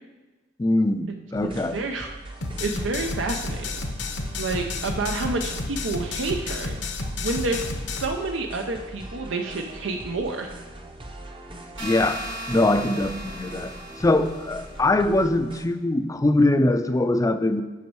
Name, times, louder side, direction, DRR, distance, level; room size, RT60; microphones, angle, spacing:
voice 1, 0.6-1.8 11.8-12.2 12.5-13.7 14.0-17.6, left 2 dB, 20° left, 9 dB, 0.4 m, -22 dB
sound 1, 1.3-15.6, right 1 dB, 25° right, 0.7 m, -41 dB
voice 2, 1.6-2.1 2.6-3.8 4.4-6.8 7.2-7.6 8.0-10.5, right 3 dB, 85° right, 4 dB, 0.6 m, -29 dB
sound 2, 2.4-8.0, left 3 dB, 65° left, 0.8 m, -31 dB
sound 3, 11.8-14.7, right 1 dB, 65° right, 1.8 m, -36 dB
8.2 x 5.3 x 4.7 m, 1.2 s
head